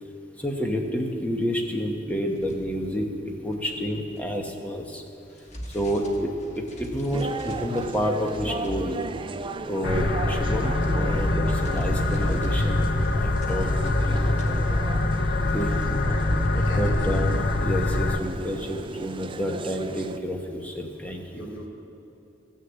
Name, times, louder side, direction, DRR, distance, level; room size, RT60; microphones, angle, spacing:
voice 1, 0.4-5.0 5.7-9.0 9.6-12.9 13.2-14.3 15.5-15.7 16.6-21.4, equal, 10° left, 1 dB, 1.0 m, -29 dB
sound 1, 2.3-4.7 5.1-18.1, equal, 35° left, 1.2 m, -42 dB
sound 2, 7.1-20.2, right 3 dB, 25° right, 0.4 m, -36 dB
sound 3, 9.8-18.2, left 2 dB, 50° left, 0.6 m, -24 dB
voice 2, 15.8-17.2 21.3-21.7, left 1 dB, 90° left, -3 dB, 2.5 m, -40 dB
14.5 x 6.6 x 8.1 m, 2.9 s
head